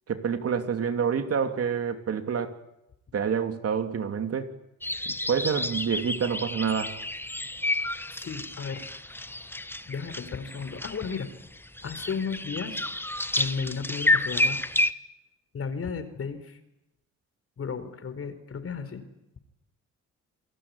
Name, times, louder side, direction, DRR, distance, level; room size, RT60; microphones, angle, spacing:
voice 1, 0.1-2.6 3.1-4.5 5.0-6.9, right 7 dB, 50° right, 7 dB, 3.0 m, -28 dB
sound 1, 4.8-14.9, left 1 dB, 5° left, 1.2 m, -30 dB
voice 2, 8.1-8.9 9.9-11.3 11.8-12.8 13.4-14.6 15.5-16.6 17.6-19.0, left 5 dB, 50° left, 11 dB, 4.7 m, -34 dB
28.5 x 20.5 x 9.9 m, 0.87 s
cardioid pair, 90°, 30 cm